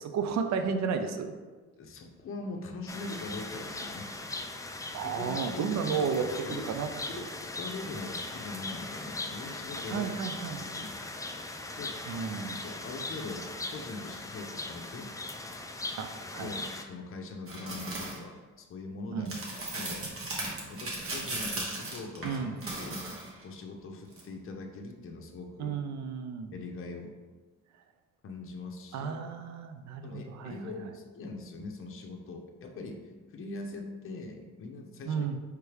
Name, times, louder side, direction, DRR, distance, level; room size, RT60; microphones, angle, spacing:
voice 1, 0.0-1.3 4.9-6.9 9.9-10.6 12.1-12.6 16.0-16.5 19.1-19.3 22.2-22.6 25.6-26.5 28.9-30.6 35.1-35.4, right 6 dB, 65° right, 7 dB, 0.5 m, -32 dB
voice 2, 1.8-4.1 5.0-6.7 7.1-7.3 7.6-10.1 10.6-11.0 11.8-12.0 12.6-13.5 13.7-15.1 16.4-20.0 20.7-23.1 23.4-25.8 26.5-27.1 28.2-29.4 30.0-33.0 33.3-35.3, left 3 dB, 45° left, 2 dB, 0.7 m, -42 dB
sound 1, 2.9-16.8, left 2 dB, 10° left, 0.4 m, -39 dB
sound 2, 17.5-18.2 19.3-23.4 24.1-24.2, right 2 dB, 45° right, 1.3 m, -37 dB
4.6 x 3.3 x 3.3 m, 1.3 s
cardioid pair, 90°, 30 cm